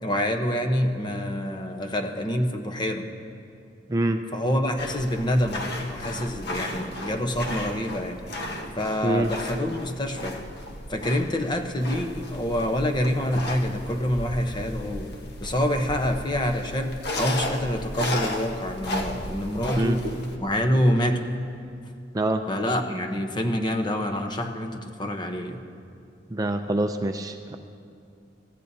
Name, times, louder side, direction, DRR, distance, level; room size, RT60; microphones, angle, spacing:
voice 1, 0.0-3.1 4.3-8.2 8.8-10.4 10.9-15.1 15.4-20.0 20.4-21.3 22.5-25.6, equal, 25° left, 4 dB, 0.9 m, -26 dB
sound 1, 4.8-20.4, left 1 dB, 60° left, 1.2 m, -34 dB
voice 2, 26.3-27.6, right 1 dB, 20° right, 6 dB, 0.4 m, -25 dB
23.5 x 15.0 x 2.8 m, 2.4 s
head